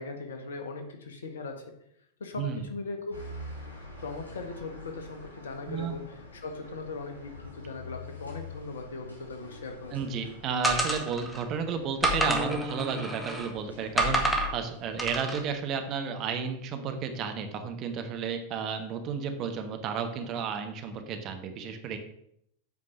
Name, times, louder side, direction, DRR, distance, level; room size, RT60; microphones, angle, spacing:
voice 1, 0.0-1.6 2.2-3.2 4.0-10.2, left 3 dB, 65° left, 5 dB, 1.4 m, -39 dB
sound 1, 3.1-15.2, left 1 dB, 80° left, 3.5 m, -47 dB
voice 2, 9.9-14.2 14.5-22.0, right 6 dB, 35° right, 6 dB, 1.2 m, -32 dB
sound 2, 10.6-11.4 12.0-13.5 14.0-14.5 15.0-15.4, right 1 dB, 5° left, 1.5 m, -28 dB
sound 3, 12.3-14.6, left 1 dB, 10° right, 0.6 m, -40 dB
8.1 x 5.2 x 5.9 m, 0.74 s
figure-of-eight pair, 90°, 0 cm